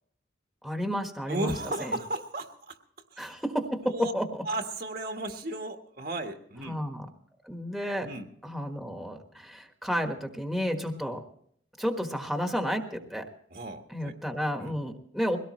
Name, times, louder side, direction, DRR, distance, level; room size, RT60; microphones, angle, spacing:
voice 1, 0.6-1.5 1.8-2.0 3.2-4.4 6.6-7.1 7.4-8.1 8.4-11.2 11.8-13.3 13.9-15.4, equal, ahead, 4 dB, 1.4 m, -31 dB
voice 2, 1.3-2.8 3.1-3.4 3.8-4.1 4.4-6.8 8.0-8.3 13.5-14.1 14.6-14.7, right 2 dB, 50° right, 5 dB, 1.5 m, -35 dB
22.5 x 17.5 x 3.1 m, 0.64 s
head